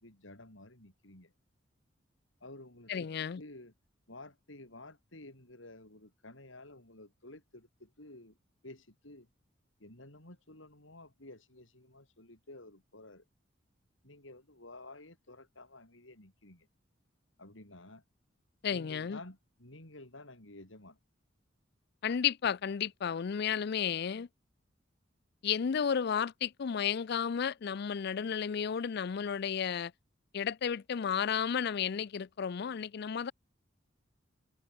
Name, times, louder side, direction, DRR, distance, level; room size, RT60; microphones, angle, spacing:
voice 1, 0.0-1.3 2.4-3.7 4.1-8.4 8.6-9.3 9.8-13.2 14.0-16.7 17.4-18.0 18.7-21.0, left 2 dB, 80° left, 5.9 m, -52 dB
voice 2, 2.9-3.4 18.6-19.2 22.0-24.3 25.4-29.9 30.3-33.3, left 7 dB, 55° left, 0.4 m, -32 dB
head